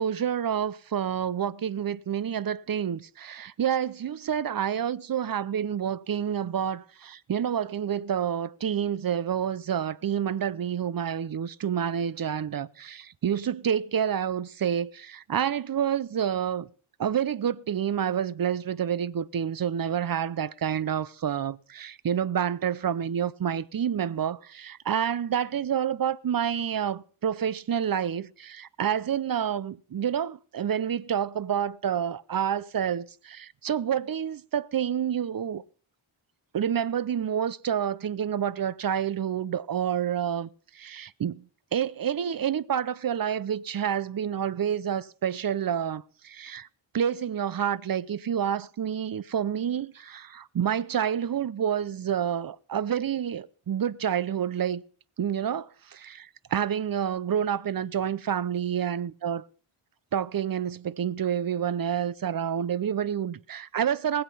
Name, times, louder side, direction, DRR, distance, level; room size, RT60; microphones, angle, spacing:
voice 1, 0.0-16.7 17.0-35.6 36.5-40.5 40.7-41.4 41.7-46.7 46.9-54.8 55.2-59.5 60.1-64.2, right 8 dB, 45° right, 0.6 m, -28 dB
19.5 x 8.0 x 5.5 m
wide cardioid pair, 120°, 50 cm